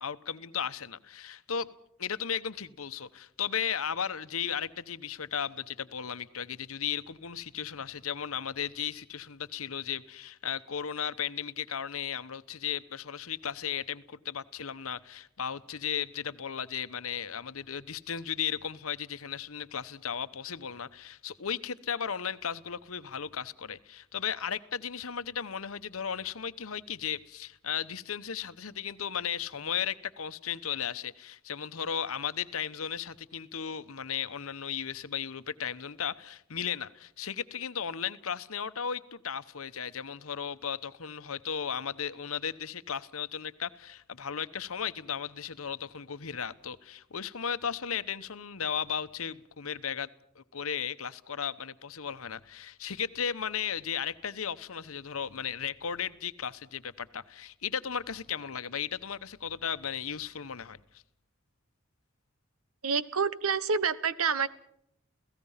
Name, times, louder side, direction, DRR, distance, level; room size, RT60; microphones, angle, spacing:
voice 1, 0.0-1.7 2.0-50.1 50.4-60.8, left 8 dB, 75° left, 13 dB, 1.0 m, -35 dB
voice 2, 62.8-64.5, right 5 dB, 80° right, 16 dB, 1.1 m, -28 dB
28.5 x 17.0 x 5.7 m, 0.72 s
head